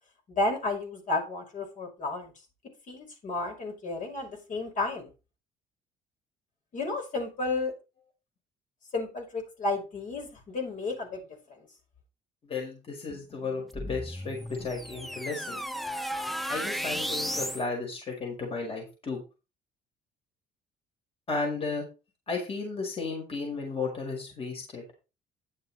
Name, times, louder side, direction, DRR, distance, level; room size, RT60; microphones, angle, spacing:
voice 1, 0.3-2.3 2.9-5.1 6.7-7.7 8.9-11.7, left 2 dB, 50° left, 2 dB, 5.9 m, -32 dB
voice 2, 12.4-15.6 16.5-19.2 21.3-21.9 22.3-24.8, left 4 dB, 35° left, 0 dB, 5.2 m, -34 dB
sound 1, 13.7-17.7, equal, ahead, 0.7 m, -34 dB
10.5 x 7.5 x 4.3 m, 0.29 s
cardioid pair, 110°, 17 cm